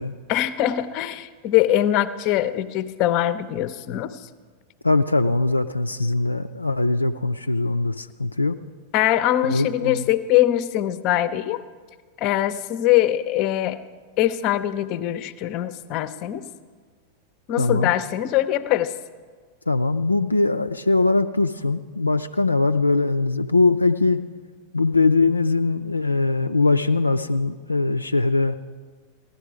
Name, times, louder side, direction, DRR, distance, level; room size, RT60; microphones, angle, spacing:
voice 1, 0.3-4.2 8.9-11.6 12.2-13.8 14.2-16.4 17.5-18.9, left 13 dB, 40° left, 13 dB, 0.6 m, -22 dB
voice 2, 4.8-8.6 9.5-10.0 17.6-17.9 19.7-24.2 24.7-28.6, left 3 dB, 85° left, 7 dB, 0.3 m, -21 dB
16.0 x 11.5 x 4.9 m, 1.5 s
figure-of-eight pair, 90°, 0 cm